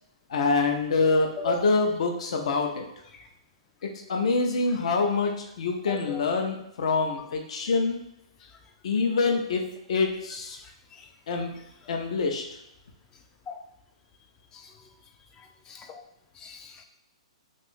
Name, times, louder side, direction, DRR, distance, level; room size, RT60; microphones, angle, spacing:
voice 1, 0.3-2.8 3.8-8.0 8.8-10.6 11.3-11.5 11.9-12.4, left 4 dB, 65° left, 3 dB, 0.6 m, -26 dB
voice 2, 5.9-6.2 7.1-7.3 10.9-11.1 13.5-13.6 14.5-14.7 15.4-16.0 16.4-16.8, left 3 dB, 15° left, 4 dB, 0.3 m, -39 dB
2.6 x 2.4 x 3.5 m, 0.83 s
hypercardioid pair, 150°, 4 cm